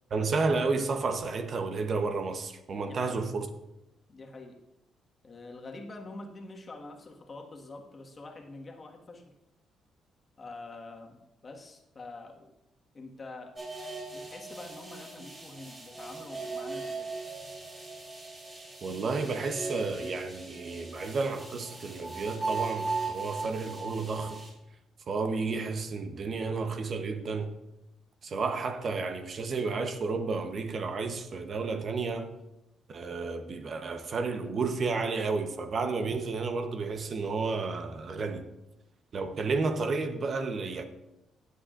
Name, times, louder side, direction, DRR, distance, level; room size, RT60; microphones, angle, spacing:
voice 1, 0.1-3.5 18.8-24.4 25.1-27.5 28.2-32.3 32.9-38.5 39.1-40.8, right 4 dB, 50° right, 0.9 m, -31 dB
voice 2, 2.9-3.3 4.1-4.6 5.2-9.3 10.4-12.5 12.9-13.6 14.1-17.1, left 2 dB, 35° left, 1.6 m, -46 dB
sound 1, 13.6-24.5, right 3 dB, 25° right, 3.9 m, -38 dB
16.0 x 8.5 x 2.5 m
cardioid pair, 90°, 0 cm